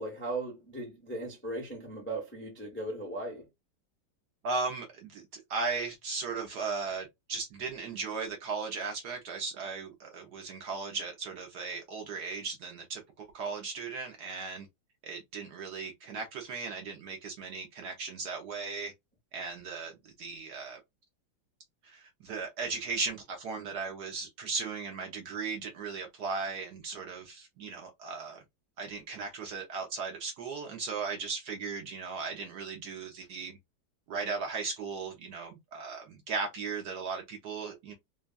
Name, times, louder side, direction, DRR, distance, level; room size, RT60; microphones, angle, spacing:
voice 1, 0.0-3.5, right 2 dB, 15° left, 0.4 m, -37 dB
voice 2, 4.4-14.7 15.0-18.9 19.3-20.8 21.8-28.4 28.8-33.6 34.1-37.9, right 4 dB, 65° right, 1.1 m, -37 dB
3.4 x 2.1 x 2.3 m
omnidirectional pair, 2.2 m